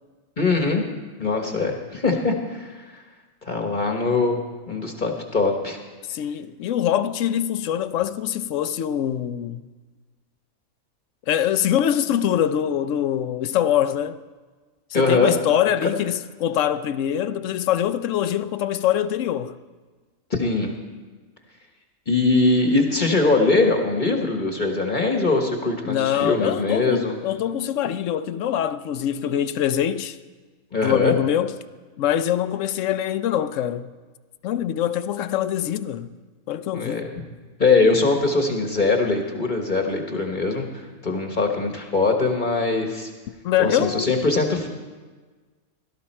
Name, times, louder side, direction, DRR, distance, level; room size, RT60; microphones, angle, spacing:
voice 1, 0.4-0.8 1.2-3.0 3.5-4.4 4.7-5.8 14.9-15.3 15.8-15.9 20.3-20.7 22.1-27.1 30.7-31.1 36.7-37.1 37.6-40.7 41.0-43.1 43.6-44.7, left 3 dB, 35° left, 1.3 m, -21 dB
voice 2, 6.1-9.6 11.3-14.2 14.9-19.6 25.9-30.2 30.8-31.5 32.0-33.9 34.4-36.1 36.5-37.0 43.4-44.1, left 10 dB, 70° left, 0.9 m, -24 dB
17.0 x 12.5 x 4.3 m
omnidirectional pair, 1.5 m